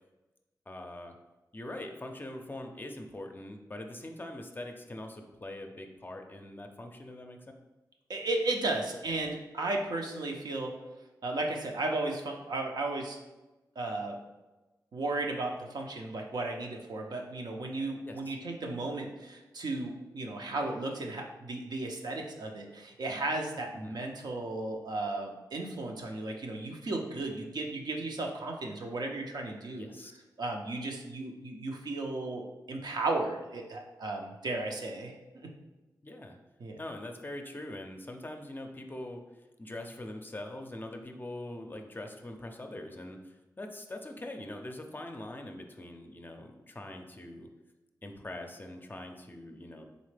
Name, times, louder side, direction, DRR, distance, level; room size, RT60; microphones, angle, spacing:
voice 1, 0.7-1.2 1.5-7.4 18.1-18.4 23.8-24.0 29.7-30.2 36.0-36.4 36.8-47.5 48.0-49.8, left 1 dB, 25° left, 4 dB, 0.5 m, -43 dB
voice 2, 8.1-10.7 11.2-13.2 13.8-14.2 14.9-29.9 30.4-35.1 36.6-36.8, right 2 dB, 65° right, 1 dB, 0.7 m, -34 dB
4.0 x 3.2 x 3.3 m, 1.1 s
cardioid pair, 60°, 8 cm